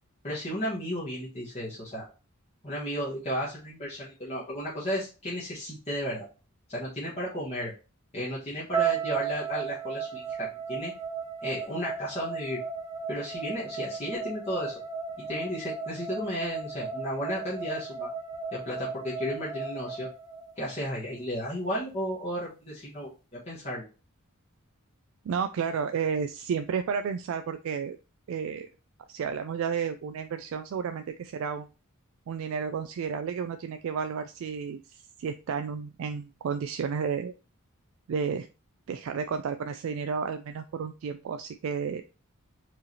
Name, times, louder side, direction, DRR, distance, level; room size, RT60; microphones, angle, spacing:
voice 1, 0.2-2.1 2.6-6.3 6.7-7.7 8.1-10.9 11.4-12.6 13.1-14.8 15.2-18.1 18.5-20.1 20.6-23.1 23.5-23.9, equal, 30° left, -7 dB, 1.2 m, -33 dB
sound 1, 8.7-20.9, right 5 dB, 20° right, 0.9 m, -35 dB
voice 2, 25.2-28.0 28.3-28.7 29.1-31.7 32.3-37.3 38.1-38.5 38.9-42.0, right 6 dB, 65° right, 8 dB, 0.3 m, -32 dB
4.6 x 3.2 x 2.8 m, 0.31 s
head